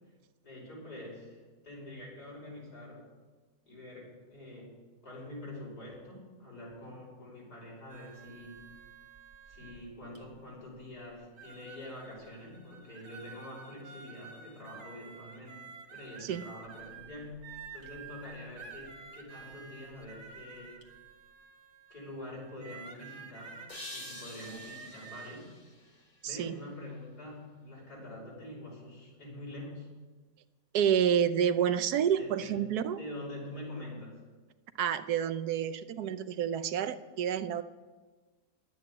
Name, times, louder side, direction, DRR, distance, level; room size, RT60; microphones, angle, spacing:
voice 1, 0.4-3.1 3.7-4.8 5.0-8.6 9.5-15.6 15.9-20.8 21.9-23.6 23.9-25.5 25.8-29.9 32.2-32.6 33.0-34.2, left 1 dB, 85° left, -4 dB, 6.2 m, -46 dB
sound 1, 7.9-10.4 11.0-11.1 11.3-25.4, right 5 dB, 55° right, 1.8 m, -50 dB
sound 2, 23.7-26.8, left 2 dB, 30° left, 1.1 m, -48 dB
voice 2, 26.2-26.5 30.7-33.0 34.8-37.6, right 9 dB, 80° right, 12 dB, 1.3 m, -29 dB
11.5 x 9.3 x 9.6 m, 1.3 s
omnidirectional pair, 1.7 m